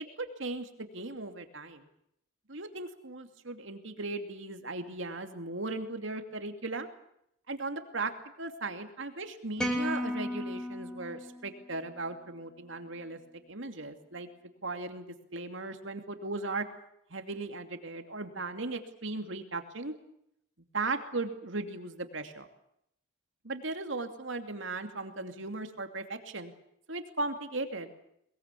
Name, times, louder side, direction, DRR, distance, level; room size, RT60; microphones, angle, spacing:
voice 1, 0.0-1.9 2.5-6.9 7.5-8.1 8.4-13.2 13.5-14.3 14.6-15.1 15.3-16.6 17.1-19.9 20.7-22.5 23.4-26.5 26.9-27.9, right 3 dB, 65° right, 6 dB, 2.6 m, -37 dB
sound 1, 9.6-12.0, left 1 dB, 5° left, 3.2 m, -35 dB
22.0 x 21.5 x 8.4 m, 0.76 s
head